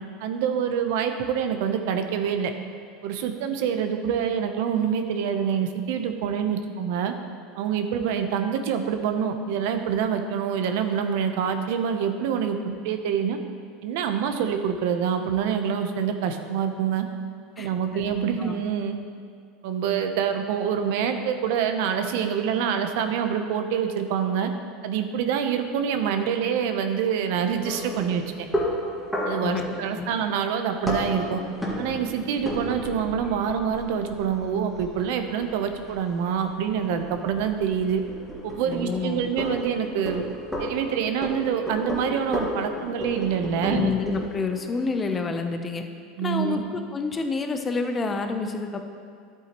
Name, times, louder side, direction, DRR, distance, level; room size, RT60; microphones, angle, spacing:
voice 1, 0.2-2.5 3.0-7.1 7.6-13.4 13.8-17.1 17.6-18.9 19.6-24.5 24.8-28.2 29.3-31.4 31.8-38.0 38.4-40.2 40.6-43.9 46.2-46.6, right 7 dB, 70° right, 7 dB, 0.7 m, -26 dB
voice 2, 17.6-18.1 18.4-18.6 29.4-30.1 38.6-39.3 43.6-45.8 46.2-48.8, left 4 dB, 20° left, 6 dB, 0.7 m, -28 dB
sound 1, 27.6-45.2, left 1 dB, ahead, 1.8 m, -34 dB
11.0 x 8.2 x 3.0 m, 2.2 s
supercardioid pair, 120°, 0 cm